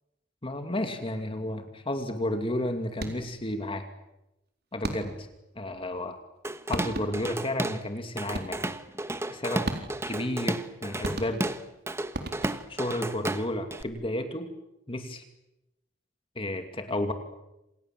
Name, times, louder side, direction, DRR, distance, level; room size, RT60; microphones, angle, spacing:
voice 1, 0.4-3.8 4.7-5.3 5.6-6.2 6.7-8.7 9.3-9.7 10.1-11.4 12.7-14.5 14.9-15.2 16.4-17.1, left 1 dB, 30° left, 6 dB, 2.4 m, -32 dB
sound 1, 2.9-3.4 4.8-5.4 6.4-6.5 6.7-7.4 8.3-8.8 9.7-10.2 11.0-11.7 12.1-12.8, right 1 dB, 60° right, 4.0 m, -36 dB
Drum kit / Drum, 6.4-7.8 8.2-13.8, right 1 dB, 15° right, 1.2 m, -33 dB
28.5 x 27.5 x 7.6 m, 0.91 s
head